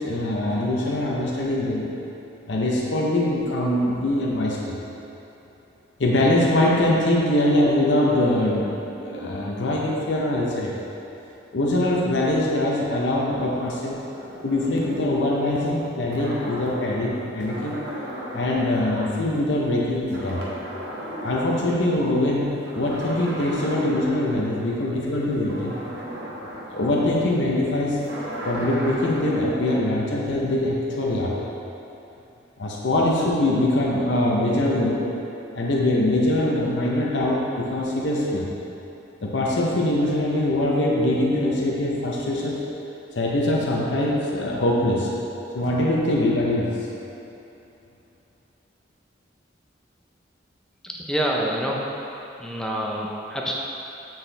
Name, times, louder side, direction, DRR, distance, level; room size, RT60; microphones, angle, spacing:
voice 1, 0.0-1.9 2.5-4.8 6.0-10.7 11.5-14.0 14.4-17.8 18.3-20.5 21.2-25.7 26.7-28.0 28.4-31.4 32.6-35.0 35.5-38.5 39.2-42.6 43.1-45.1 45.5-46.8, left 1 dB, 70° left, -3 dB, 0.7 m, -23 dB
sound 1, 13.4-19.8 20.1-22.1 22.6-29.7, equal, 65° right, 1.1 m, -36 dB
voice 2, 50.8-51.8 52.4-53.5, equal, 5° left, -2 dB, 0.6 m, -27 dB
7.6 x 4.4 x 3.3 m, 3.0 s
head